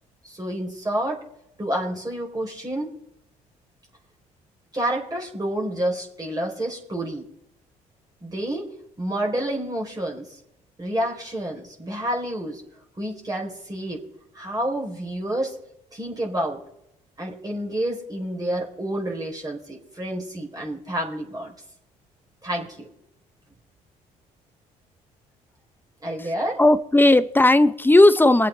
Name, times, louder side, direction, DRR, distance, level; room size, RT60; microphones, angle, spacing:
voice 1, 0.2-1.2 1.6-2.9 4.7-7.3 8.2-8.7 9.0-10.4 10.8-12.6 13.0-14.0 14.3-15.6 15.9-16.6 17.2-21.5 22.4-22.9 26.0-26.6, right 1 dB, 20° right, -1 dB, 4.0 m, -29 dB
voice 2, 26.6-28.5, left 2 dB, 10° left, 13 dB, 0.9 m, -16 dB
24.0 x 8.2 x 3.4 m, 0.78 s
supercardioid pair, 65°, 17 cm